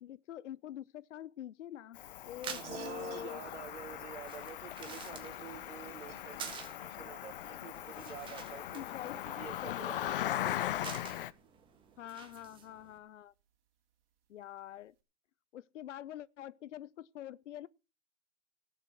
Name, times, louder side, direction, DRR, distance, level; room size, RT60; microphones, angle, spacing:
voice 1, 0.0-2.0 2.2-3.4 8.7-9.2 9.6-9.9 12.0-13.3 14.3-14.9 15.5-17.7, left 12 dB, 80° left, 0.7 m, -45 dB
Cricket, 2.0-11.3, left 12 dB, 50° left, 0.8 m, -40 dB
sound 1, 2.2-13.0, right 7 dB, 15° right, 1.5 m, -50 dB
sound 2, 2.6-12.5, right 10 dB, 50° right, 3.3 m, -57 dB
voice 2, 2.6-8.8 9.3-10.7, right 9 dB, 75° right, 1.7 m, -49 dB
17.5 x 7.4 x 5.9 m
hypercardioid pair, 150°, 36 cm